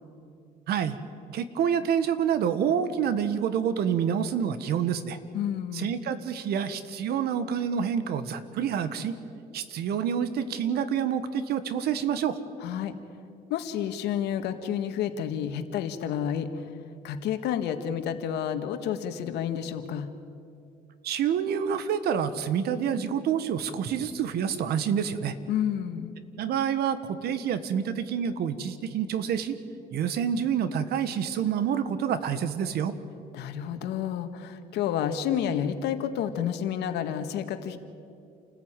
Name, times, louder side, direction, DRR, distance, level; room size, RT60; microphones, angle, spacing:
voice 1, 0.7-1.0 1.3-5.2 5.7-9.1 9.5-12.4 21.0-25.4 26.4-29.6 29.9-32.9, right 8 dB, 70° right, 12 dB, 1.5 m, -27 dB
voice 2, 5.3-5.9 12.6-12.9 13.5-16.7 17.0-20.1 25.5-26.1 33.3-37.8, left 9 dB, 80° left, 8 dB, 1.7 m, -30 dB
28.5 x 14.5 x 9.1 m, 2.5 s
cardioid pair, 110°, 17 cm